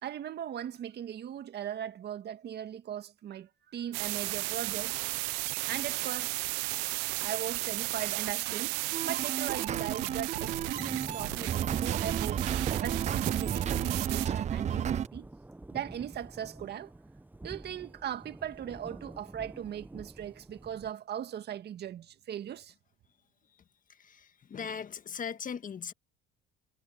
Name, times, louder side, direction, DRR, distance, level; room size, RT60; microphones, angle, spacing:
voice 1, 0.0-4.9 5.7-6.4 7.2-12.5 12.8-15.3 15.7-16.9 17.4-22.7, right 10 dB, 55° right, 2.0 m, -39 dB
sound 1, 3.9-14.3, right 25 dB, 85° right, 0.7 m, -34 dB
sound 2, 8.9-15.1, right 9 dB, 35° right, 0.4 m, -32 dB
Thunder / Rain, 10.4-20.9, right 2 dB, 10° right, 0.9 m, -46 dB
voice 2, 23.9-25.9, left 7 dB, 40° left, 1.8 m, -39 dB
supercardioid pair, 75°, 21 cm